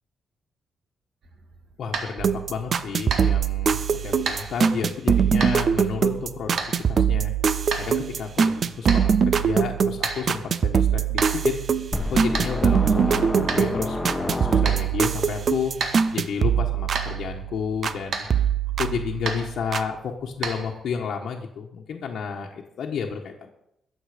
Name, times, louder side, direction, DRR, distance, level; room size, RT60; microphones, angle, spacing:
sound 1, 1.2-21.1, right 4 dB, 60° right, 1.9 m, -36 dB
voice 1, 1.8-6.6 6.9-7.3 7.8-11.6 12.1-15.7 16.1-18.3 18.8-23.5, left 6 dB, 65° left, 0 dB, 1.3 m, -31 dB
sound 2, 2.2-18.0 18.3-19.9, right 7 dB, 45° right, 0.6 m, -23 dB
sound 3, 11.9-15.2, left 1 dB, 10° left, 1.3 m, -29 dB
21.5 x 7.4 x 5.1 m, 0.77 s
wide cardioid pair, 155°, 0 cm